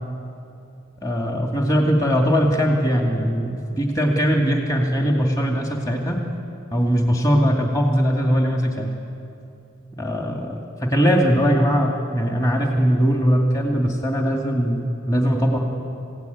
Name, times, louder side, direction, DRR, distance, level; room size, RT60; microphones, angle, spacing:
voice 1, 1.0-6.2 6.7-8.9 10.0-15.6, equal, 20° left, 0 dB, 2.3 m, -20 dB
28.5 x 16.5 x 9.4 m, 2.7 s
head